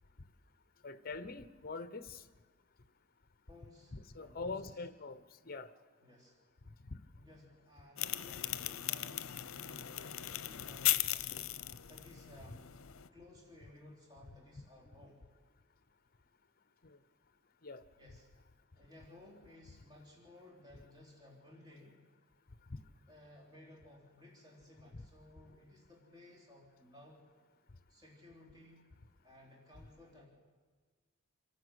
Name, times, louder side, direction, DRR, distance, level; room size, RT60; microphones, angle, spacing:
voice 1, 0.8-2.2 3.9-5.2 5.5-5.7 16.8-17.0 17.6-17.8, left 3 dB, 45° left, 13 dB, 0.9 m, -43 dB
voice 2, 3.5-4.9 6.0-6.3 7.2-12.7 13.1-15.2 18.0-18.3 18.8-22.0 23.1-27.2 27.9-28.9 29.2-30.3, left 1 dB, 20° right, -3 dB, 3.4 m, -58 dB
sound 1, 8.0-13.1, left 14 dB, 75° left, 0.7 m, -37 dB
27.5 x 11.5 x 8.2 m, 1.5 s
head